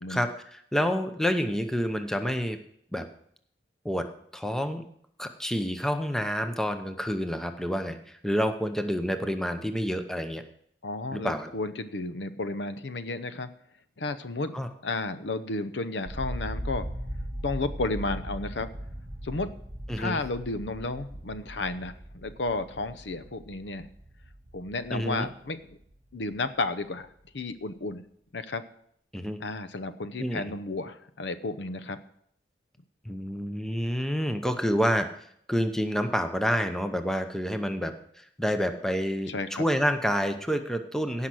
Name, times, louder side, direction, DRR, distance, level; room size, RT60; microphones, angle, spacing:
voice 1, 0.1-2.6 2.9-3.1 3.8-4.1 4.3-4.8 5.2-10.4 11.1-11.5 14.5-14.7 19.9-20.2 24.9-25.3 29.1-29.4 30.2-30.4 33.0-35.1 35.5-39.3 39.6-41.3, equal, 5° left, 7 dB, 0.8 m, -28 dB
voice 2, 10.8-13.5 14.0-16.9 17.4-18.7 19.2-19.5 20.0-23.9 24.5-25.8 26.1-27.1 27.3-28.0 28.3-28.6 29.4-32.0 39.3-39.6, left 3 dB, 75° left, 12 dB, 0.8 m, -32 dB
sound 1, 16.1-26.0 26.3-27.1, equal, 15° right, 2.5 m, -39 dB
16.5 x 5.7 x 6.2 m, 0.68 s
head